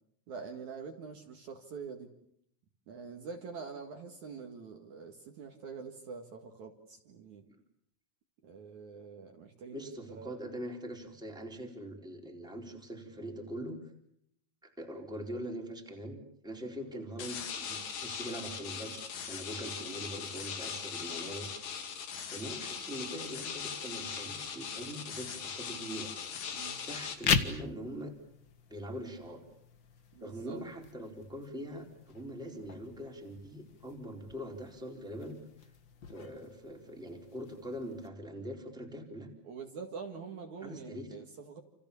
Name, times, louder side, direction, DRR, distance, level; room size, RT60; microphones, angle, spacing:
voice 1, 0.3-2.1 2.9-7.4 8.4-10.3 19.8-20.0 26.5-26.8 30.1-30.6 39.4-41.6, right 5 dB, 55° right, 3 dB, 3.1 m, -45 dB
voice 2, 9.7-13.8 14.6-21.5 22.3-26.1 26.9-28.1 28.7-29.4 30.2-35.4 36.1-39.3 40.6-41.2, equal, ahead, 1 dB, 3.9 m, -42 dB
sound 1, 17.2-27.2, left 7 dB, 70° left, 4.1 m, -40 dB
sound 2, 27.1-38.1, left 6 dB, 50° left, 1.5 m, -39 dB
29.5 x 28.5 x 7.1 m, 0.71 s
omnidirectional pair, 4.2 m